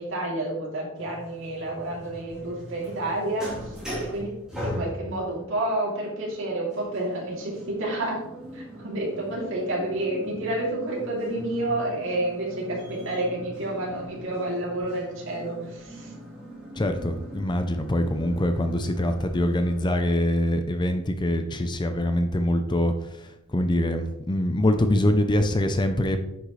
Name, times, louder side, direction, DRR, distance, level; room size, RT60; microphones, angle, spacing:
voice 1, 0.0-4.3 4.6-8.2 8.5-16.1, right 1 dB, 60° right, -3 dB, 3.0 m, -30 dB
sound 1, 1.0-19.8, equal, 5° right, 3.2 m, -40 dB
voice 2, 16.8-22.9 23.2-26.2, left 1 dB, 20° left, 7 dB, 0.5 m, -24 dB
10.0 x 6.4 x 3.2 m, 0.89 s
head